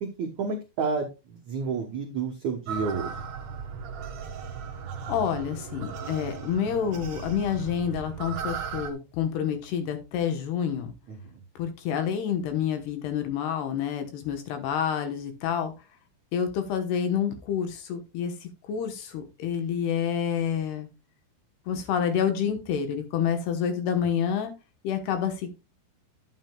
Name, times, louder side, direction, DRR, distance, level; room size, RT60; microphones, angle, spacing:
voice 1, 0.0-3.1 11.1-11.4, right 5 dB, 80° right, 2 dB, 1.6 m, -31 dB
sound 1, 2.7-8.9, right 6 dB, 60° right, 1.9 m, -36 dB
voice 2, 5.1-10.9 11.6-15.7 16.3-20.9 21.7-24.5 24.8-25.5, left 8 dB, 70° left, 7 dB, 3.0 m, -28 dB
11.5 x 8.7 x 2.3 m, 0.27 s
omnidirectional pair, 5.2 m